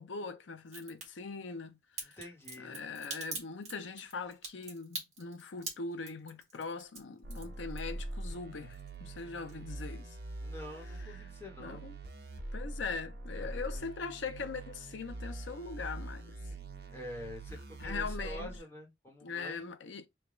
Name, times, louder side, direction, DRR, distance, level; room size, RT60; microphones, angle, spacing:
voice 1, 0.0-2.2 2.6-10.2 10.9-11.3 11.6-12.0 12.5-16.3 17.8-18.5 19.2-20.1, left 4 dB, 90° left, 0.6 m, -41 dB
Crack, 0.7-1.1 2.0-8.2 8.5-9.2 9.5-9.6, right 4 dB, 35° right, 1.5 m, -43 dB
voice 2, 2.0-2.8 10.4-11.8 13.3-13.9 16.9-19.7, left 1 dB, 15° left, 1.1 m, -47 dB
sound 1, 7.2-18.6, right 2 dB, 60° right, 0.7 m, -43 dB
3.3 x 2.3 x 3.7 m
head